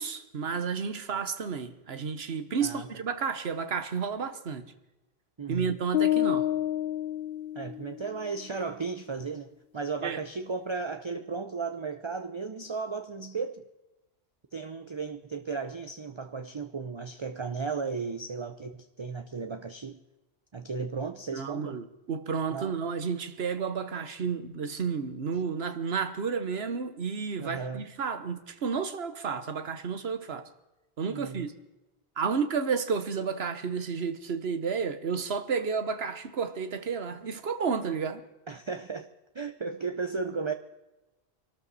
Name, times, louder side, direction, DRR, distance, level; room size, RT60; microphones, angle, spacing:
voice 1, 0.0-4.7 5.5-6.5 10.0-10.2 21.3-30.5 31.0-31.5 32.2-38.2, right 6 dB, 70° right, 1.3 m, -31 dB
voice 2, 5.4-5.7 7.5-13.6 14.5-20.0 20.5-21.8 22.5-22.7 27.4-27.8 31.1-31.5 38.5-39.1 39.3-40.5, right 4 dB, 30° right, 0.6 m, -35 dB
sound 1, 5.9-8.1, left 13 dB, 65° left, 1.0 m, -28 dB
24.0 x 13.0 x 4.2 m
omnidirectional pair, 1.1 m